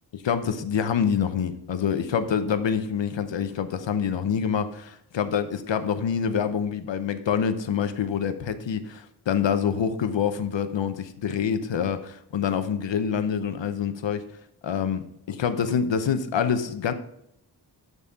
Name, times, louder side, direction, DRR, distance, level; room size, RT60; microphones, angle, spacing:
voice 1, 0.2-14.2 14.6-15.0 15.4-16.9, left 7 dB, 80° left, 10 dB, 0.8 m, -26 dB
12.5 x 4.2 x 3.6 m, 0.76 s
wide cardioid pair, 120°, 43 cm